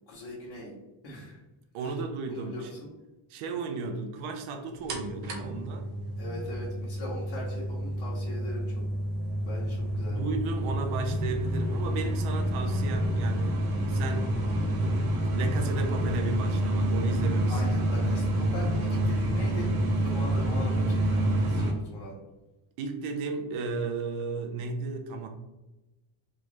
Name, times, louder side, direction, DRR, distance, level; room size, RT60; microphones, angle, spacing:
voice 1, 0.1-0.7 1.0-1.4 1.8-1.9 2.3-2.9 6.2-8.7 9.5-10.2 17.5-19.7 20.0-22.1, left 1 dB, 60° left, -7 dB, 1.2 m, -41 dB
voice 2, 1.7-2.7 3.3-5.9 10.1-13.6 13.9-14.4 14.7-17.6 18.0-18.1 22.8-25.3, right 4 dB, 85° right, 5 dB, 0.7 m, -34 dB
sound 1, 4.9-21.7, right 1 dB, 50° right, 0.8 m, -28 dB
3.5 x 2.0 x 3.2 m, 1.0 s
cardioid pair, 110°, 48 cm